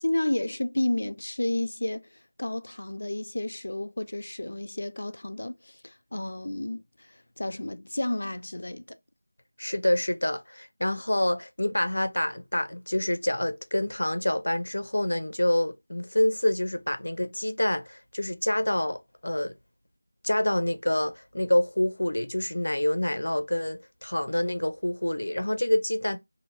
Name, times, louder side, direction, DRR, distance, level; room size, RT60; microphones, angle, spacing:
voice 1, 0.0-9.0, left 1 dB, 50° left, 0.4 m, -31 dB
voice 2, 9.6-19.5 20.2-26.2, left 1 dB, 85° left, 0.6 m, -27 dB
2.7 x 2.6 x 3.0 m
figure-of-eight pair, 180°, 0 cm